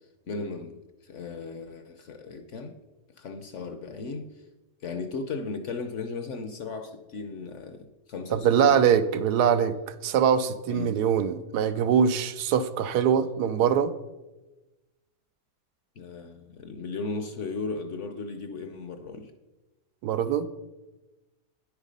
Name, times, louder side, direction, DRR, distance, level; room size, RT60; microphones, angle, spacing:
voice 1, 0.3-2.8 3.2-4.3 4.8-8.8 10.7-11.0 16.0-19.3, left 4 dB, 60° left, 0.9 m, -36 dB
voice 2, 8.3-9.8 10.0-13.9 20.0-20.5, right 8 dB, 80° right, 1.1 m, -23 dB
9.8 x 8.2 x 5.2 m
omnidirectional pair, 1.8 m